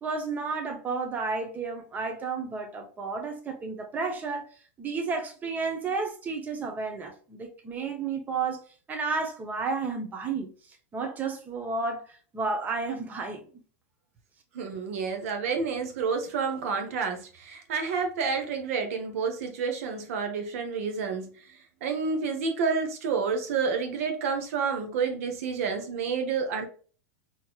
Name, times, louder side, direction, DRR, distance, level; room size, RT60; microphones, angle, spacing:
voice 1, 0.0-4.4 4.8-8.6 8.9-10.5 10.9-13.4, right 4 dB, 20° right, 0.9 m, -32 dB
voice 2, 14.5-26.7, right 5 dB, 70° right, 1.0 m, -29 dB
4.2 x 3.0 x 2.3 m
hypercardioid pair, 115°, 8 cm